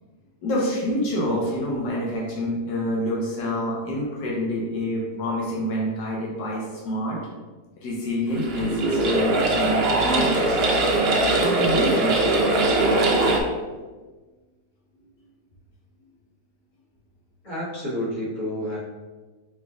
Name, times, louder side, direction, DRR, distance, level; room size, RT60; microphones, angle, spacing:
voice 1, 0.4-7.2 7.8-10.6 11.3-12.4, equal, 85° left, -4 dB, 1.4 m, -27 dB
sound 1, 8.3-13.4, right 2 dB, 80° right, 0.5 m, -21 dB
voice 2, 17.4-18.8, left 1 dB, 50° left, -7 dB, 1.6 m, -29 dB
5.0 x 3.3 x 2.4 m, 1.3 s
omnidirectional pair, 1.8 m